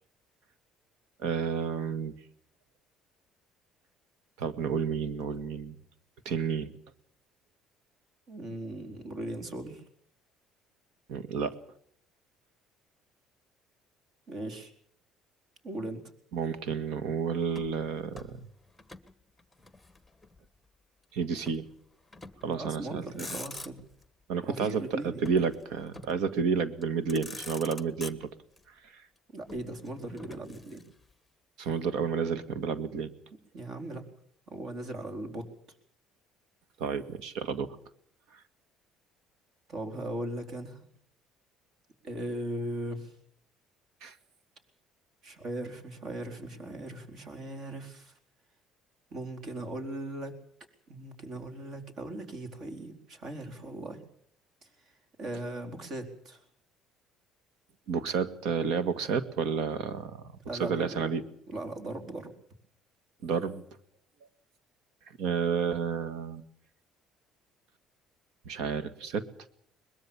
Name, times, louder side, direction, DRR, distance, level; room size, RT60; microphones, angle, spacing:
voice 1, 1.2-2.1 4.4-5.8 6.3-6.8 11.1-11.6 16.3-18.4 21.1-21.7 22.4-23.3 24.3-28.3 28.8-29.0 31.6-33.1 36.8-37.8 38.3-38.4 44.0-44.2 57.9-61.2 63.2-63.6 65.2-66.4 68.5-69.3, right 6 dB, 80° right, 12 dB, 1.9 m, -31 dB
voice 2, 8.3-9.8 14.3-14.7 15.6-16.0 22.5-23.8 24.4-25.2 29.3-30.8 33.5-34.0 34.5-35.4 39.7-40.8 42.0-43.1 45.2-48.1 49.1-50.3 50.9-54.0 55.2-56.4 60.5-61.1 61.5-62.3, right 1 dB, 50° right, 6 dB, 4.4 m, -38 dB
Motor vehicle (road), 17.5-19.1 19.4-20.5 21.5-21.7 22.1-22.6 23.0-24.1 25.2-26.3 26.8-26.9 27.1-28.6 29.5-31.1, left 2 dB, 5° left, 1.3 m, -46 dB
22.5 x 21.0 x 7.2 m, 0.64 s
cardioid pair, 135°, 0 cm